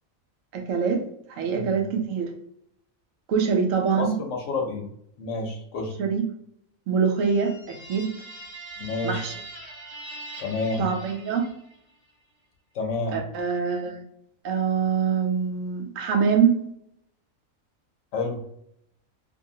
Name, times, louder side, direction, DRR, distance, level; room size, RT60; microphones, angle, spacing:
voice 1, 0.5-1.0 1.3-2.3 3.3-4.2 6.0-6.2 6.9-8.1 9.0-9.3 10.8-11.5 13.1-14.0 14.4-16.6, right 6 dB, 75° right, 4 dB, 0.9 m, -24 dB
voice 2, 3.9-4.9 5.2-5.9 8.8-9.3 10.4-10.8 12.7-13.2 18.1-18.4, left 3 dB, 65° left, 2 dB, 0.9 m, -29 dB
sound 1, 7.2-11.9, right 2 dB, 30° right, 1.2 m, -42 dB
2.7 x 2.6 x 2.7 m, 0.72 s
omnidirectional pair, 1.4 m